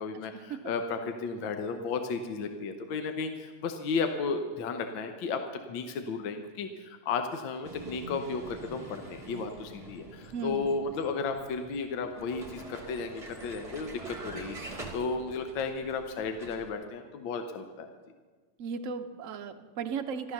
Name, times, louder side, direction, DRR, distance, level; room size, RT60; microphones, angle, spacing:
voice 1, 0.0-5.4 5.7-17.9, left 4 dB, 70° left, 6 dB, 1.7 m, -34 dB
Vehicle, 7.6-16.7, right 2 dB, 20° right, 1.6 m, -45 dB
voice 2, 10.3-10.7 18.6-20.3, right 6 dB, 65° right, 8 dB, 0.8 m, -36 dB
13.5 x 12.5 x 6.6 m, 1.4 s
omnidirectional pair, 2.3 m